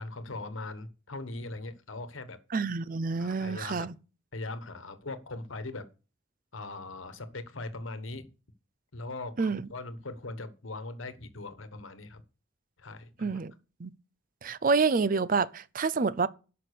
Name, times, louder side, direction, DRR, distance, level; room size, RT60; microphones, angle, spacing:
voice 1, 0.0-2.4 3.2-3.9 4.3-5.9 6.5-8.3 8.9-12.2 12.8-13.4, left 2 dB, 80° left, 1.3 m, -40 dB
voice 2, 2.5-3.9 9.4-9.6 13.2-13.5 13.8-13.9 14.4-16.3, right 4 dB, 45° right, 0.5 m, -28 dB
11.5 x 5.9 x 6.6 m
head